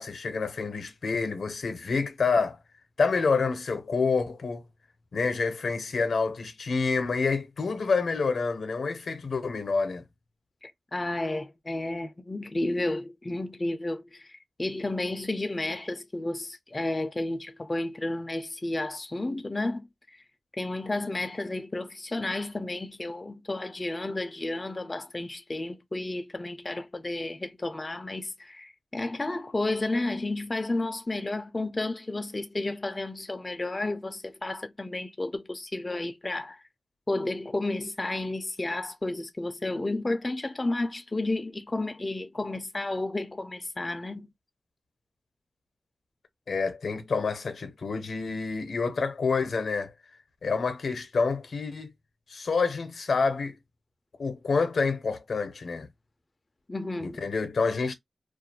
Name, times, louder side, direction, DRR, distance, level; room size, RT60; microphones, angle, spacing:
voice 1, 0.0-2.6 3.0-4.6 5.1-10.0 46.5-49.9 50.4-51.9 52.3-53.6 54.2-55.9 57.0-57.9, left 4 dB, 75° left, 0.6 m, -28 dB
voice 2, 10.6-20.2 20.5-36.6 37.1-44.3 56.7-57.2, left 2 dB, 30° left, 0.3 m, -32 dB
2.3 x 2.1 x 2.8 m
wide cardioid pair, 80°, 0 cm